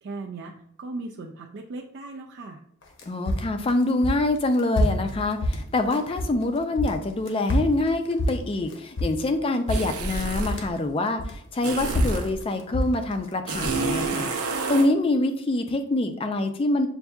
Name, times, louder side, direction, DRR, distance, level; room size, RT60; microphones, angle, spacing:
voice 1, 0.0-2.6, right 3 dB, 50° right, 1 dB, 0.3 m, -37 dB
sound 1, 2.8-6.4 6.7-9.4 9.7-10.8 11.2-13.3, equal, 55° left, 0.7 m, -27 dB
voice 2, 3.1-14.3 14.7-16.9, left 2 dB, 25° left, 7 dB, 0.3 m, -25 dB
sound 2, 9.7-10.6 11.6-12.3 13.5-14.9, right 3 dB, 90° right, 0.7 m, -28 dB
6.7 x 2.6 x 2.3 m, 0.72 s
head